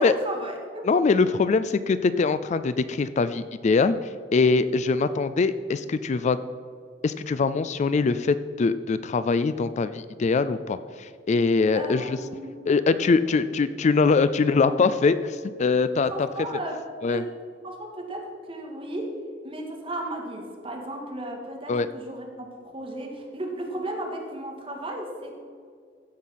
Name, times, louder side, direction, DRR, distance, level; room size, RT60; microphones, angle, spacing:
voice 1, 0.0-0.8 11.7-12.6 16.0-16.8 17.1-17.3 17.6-19.2 19.4-25.3, right 1 dB, 30° right, 1 dB, 1.9 m, -34 dB
voice 2, 0.8-6.4 7.0-12.2 12.7-16.1 17.0-17.2 21.7-21.9, left 4 dB, 40° left, 13 dB, 0.3 m, -23 dB
15.0 x 5.6 x 5.9 m, 2.1 s
head